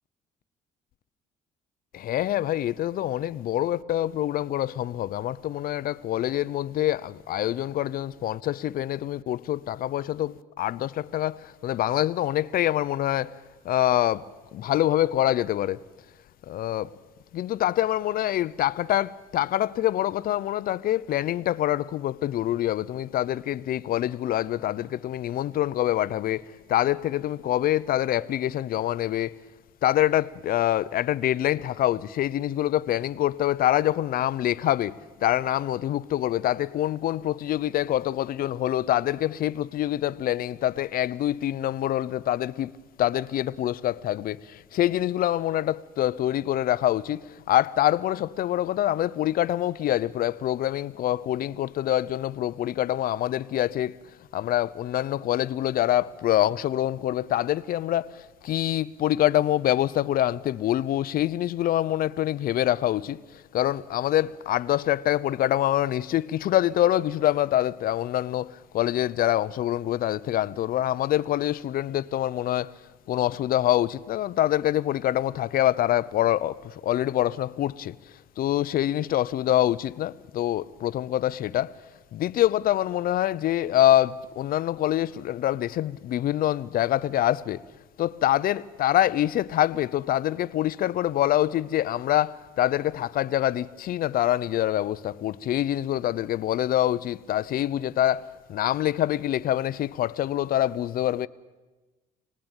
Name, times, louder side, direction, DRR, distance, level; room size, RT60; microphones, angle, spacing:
voice 1, 1.9-13.4 13.6-15.8 16.4-16.9 17.3-29.4 29.8-42.7 43.0-54.0 54.3-72.8 73.1-78.0 78.4-81.7 82.1-87.6 88.0-101.3, left 12 dB, 60° left, 0.7 m, -25 dB
26.0 x 19.0 x 9.1 m
cardioid pair, 110°, 17 cm